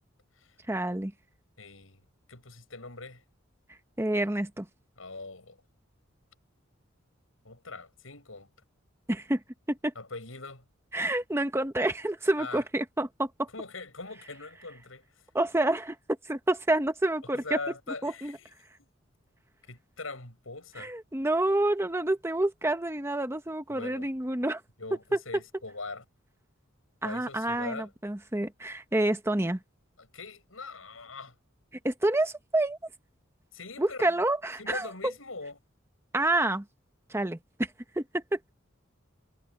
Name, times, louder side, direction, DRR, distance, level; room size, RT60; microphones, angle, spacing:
voice 1, 0.7-1.1 4.0-4.7 9.1-9.4 9.7-9.9 10.9-13.5 15.3-16.0 16.3-17.4 18.0-18.4 20.8-24.6 25.1-25.2 27.0-29.6 31.8-32.8 33.8-35.1 36.1-36.6 37.1-38.4, right 1 dB, 15° right, 1.0 m, -28 dB
voice 2, 1.6-3.2 5.0-5.6 7.4-8.5 9.9-10.7 12.4-12.6 13.5-15.2 17.3-18.5 19.7-20.9 23.7-24.1 24.8-26.0 27.0-27.9 30.0-31.4 33.5-34.1 34.6-35.6, left 3 dB, 85° left, 7.8 m, -42 dB
head